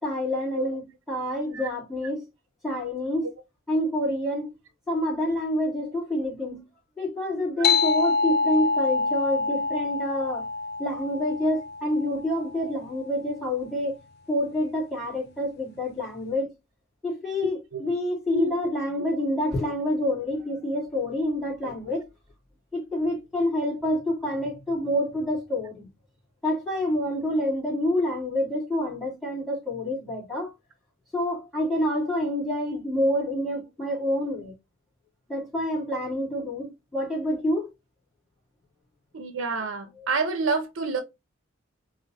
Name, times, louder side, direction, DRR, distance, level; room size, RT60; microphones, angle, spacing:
voice 1, 0.0-2.2 2.6-3.3 3.7-4.5 4.9-6.6 7.0-10.5 10.8-14.0 14.3-16.5 17.0-22.0 22.7-25.9 26.4-30.5 31.1-34.5 35.3-37.7 40.0-40.1, left 1 dB, ahead, 3.0 m, -27 dB
sound 1, 7.6-12.6, left 4 dB, 50° left, 0.4 m, -26 dB
voice 2, 39.1-41.0, right 3 dB, 70° right, 0.7 m, -28 dB
4.4 x 2.6 x 4.1 m
head